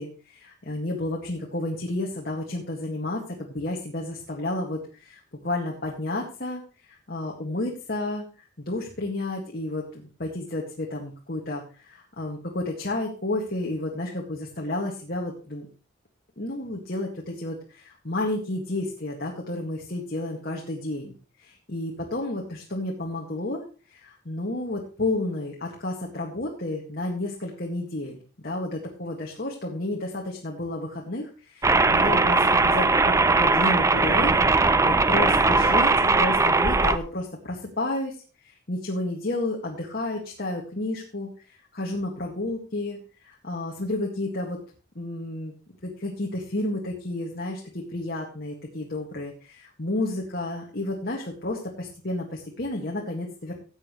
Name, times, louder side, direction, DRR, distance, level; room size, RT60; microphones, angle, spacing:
voice 1, 0.0-6.6 6.9-15.7 16.4-23.6 23.9-35.9 36.1-38.2 38.4-41.3 41.7-43.0 43.2-44.6 45.0-45.5 45.8-53.5, left 2 dB, 50° left, -1 dB, 2.0 m, -31 dB
sound 1, 31.6-37.0, right 3 dB, 15° right, 0.4 m, -20 dB
15.5 x 8.8 x 3.2 m, 0.35 s
head